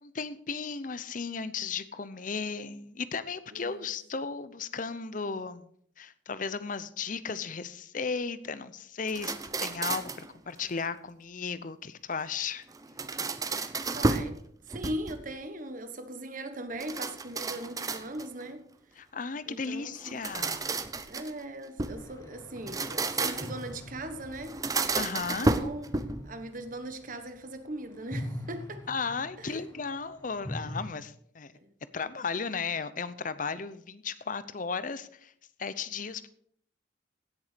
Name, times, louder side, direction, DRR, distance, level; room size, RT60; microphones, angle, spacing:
voice 1, 0.0-5.7 6.0-12.6 19.0-20.9 24.9-25.5 28.9-31.5 31.9-35.3 35.6-36.3, left 5 dB, 45° left, 0.7 m, -35 dB
voice 2, 3.5-3.9 13.9-14.4 14.7-18.7 19.5-20.2 21.0-24.6 25.4-28.9 29.4-29.7 31.6-31.7, right 1 dB, 45° right, 1.3 m, -40 dB
sound 1, 9.1-10.3 12.7-14.4 14.7-15.3 16.8-18.4 20.0-22.0 22.6-23.7 24.4-26.3, right 3 dB, 20° right, 0.6 m, -31 dB
sound 2, 21.9-27.6 27.9-30.9, left 1 dB, 20° left, 1.4 m, -43 dB
16.5 x 7.0 x 5.1 m
head